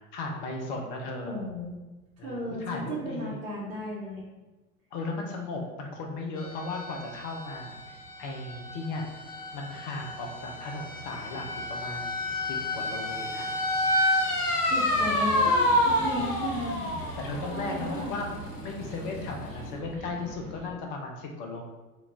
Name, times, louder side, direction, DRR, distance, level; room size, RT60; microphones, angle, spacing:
voice 1, 0.0-1.4 2.2-3.4 4.9-9.1 9.5-13.5 14.2-14.5 16.1-16.2 17.2-18.3 18.6-21.6, left 3 dB, 30° left, 1 dB, 0.5 m, -36 dB
voice 2, 1.2-1.7 2.2-4.2 14.7-16.8 17.5-18.3, equal, 60° right, -7 dB, 1.0 m, -35 dB
sound 1, 6.4-19.7, left 1 dB, 80° left, 0.7 m, -29 dB
sound 2, 14.9-20.7, right 1 dB, 25° right, 0.7 m, -43 dB
3.8 x 2.3 x 3.6 m, 1.2 s
figure-of-eight pair, 85°, 47 cm